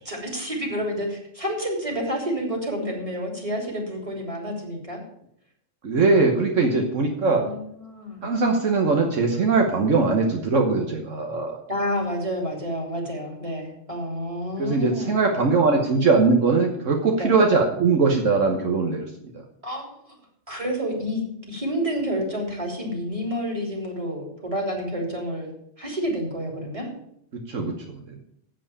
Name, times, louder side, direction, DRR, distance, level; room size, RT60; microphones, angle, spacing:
voice 1, 0.0-5.0 7.4-8.3 11.7-15.2 17.2-17.3 19.6-20.1 20.5-26.9, equal, 25° right, 0 dB, 3.1 m, -29 dB
voice 2, 5.8-7.5 8.2-11.6 14.6-19.1 27.5-27.7, right 4 dB, 75° right, 2 dB, 1.5 m, -21 dB
7.7 x 7.6 x 8.4 m, 0.72 s
omnidirectional pair, 1.3 m